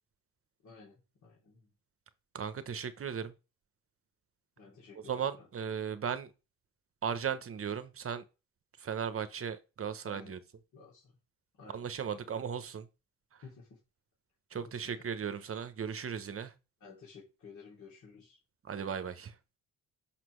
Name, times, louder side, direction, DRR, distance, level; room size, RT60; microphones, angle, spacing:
voice 1, 0.6-1.7 4.6-5.5 10.0-10.4 10.7-11.1 11.6-12.6 13.4-13.8 14.5-14.8 16.8-18.4, left 4 dB, 60° left, 2.9 m, -54 dB
voice 2, 2.3-3.3 5.1-6.3 7.0-8.2 8.8-10.4 11.7-12.9 14.5-16.5 18.6-19.3, right 7 dB, 40° right, 0.9 m, -36 dB
5.9 x 5.9 x 3.2 m
cardioid pair, 75°, 34 cm